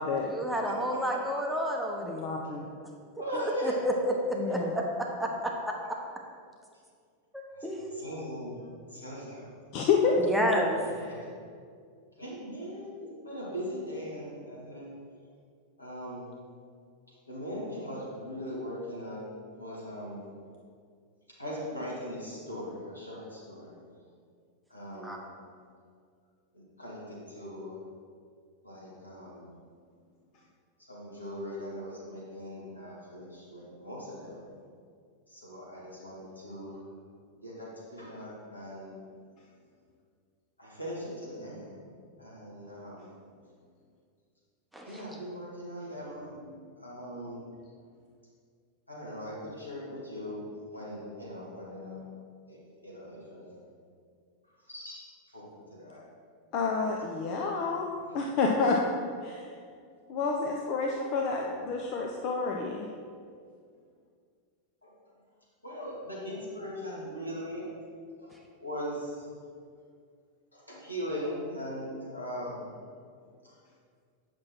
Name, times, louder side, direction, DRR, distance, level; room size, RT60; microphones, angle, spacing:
voice 1, 0.2-2.2 3.3-4.1 4.5-6.0 7.3-7.8 10.2-10.8 25.0-25.2 44.7-45.1, equal, 5° right, 0 dB, 1.1 m, -30 dB
voice 2, 2.0-2.7 4.4-4.7 9.7-10.2 11.1-11.2 56.5-57.9 58.1-58.8 59.2-59.5 60.1-62.9, left 4 dB, 40° left, 0 dB, 0.7 m, -29 dB
voice 3, 3.2-3.8 7.5-7.7 7.9-8.6 8.9-9.5 10.8-11.3 12.2-14.9 15.8-16.3 17.3-19.3 19.6-20.2 21.4-23.7 24.7-25.2 26.5-27.8 28.6-29.5 30.9-34.4 35.3-36.8 37.4-38.9 40.6-41.9 42.2-43.1 44.9-47.4 48.9-50.4 50.7-52.1 52.5-53.6 54.7-55.1 55.3-56.0 56.8-57.4 58.1-58.2 61.3-61.7 64.8-64.9 65.6-67.7 68.2-68.4 68.6-69.3 70.5-72.7 73.4-73.5, equal, 85° left, -6 dB, 2.3 m, -40 dB
8.5 x 6.0 x 4.5 m, 2.1 s
figure-of-eight pair, 90°, 0 cm